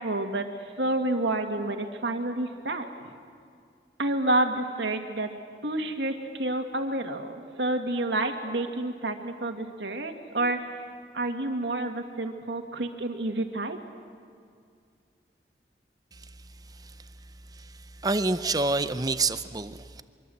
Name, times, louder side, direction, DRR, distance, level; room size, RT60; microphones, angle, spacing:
voice 1, 0.0-3.2 4.0-5.3 5.6-10.6 11.1-13.8, right 2 dB, 75° right, 5 dB, 2.1 m, -29 dB
voice 2, 18.0-20.0, right 3 dB, 20° right, 11 dB, 0.6 m, -27 dB
24.0 x 23.5 x 7.9 m, 2.3 s
head